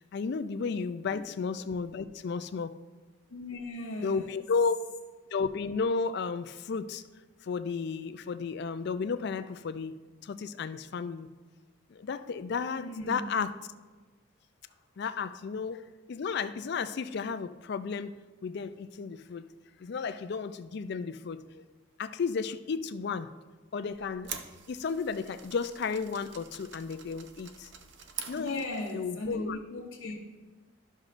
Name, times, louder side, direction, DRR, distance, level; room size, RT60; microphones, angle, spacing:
voice 1, 0.0-2.8 4.0-4.8 5.3-7.0 7.4-11.3 11.9-13.5 15.0-15.8 16.1-18.1 18.4-19.5 19.8-21.7 22.0-23.3 23.7-24.3 24.7-27.7 28.3-29.6, left 5 dB, 50° left, 11 dB, 0.3 m, -33 dB
voice 2, 3.3-4.4 12.8-13.3 28.3-30.2, left 2 dB, 85° left, -6 dB, 1.2 m, -38 dB
sound 1, 23.9-29.0, right 7 dB, 55° right, 0.6 m, -45 dB
12.5 x 6.3 x 2.5 m, 1.3 s
head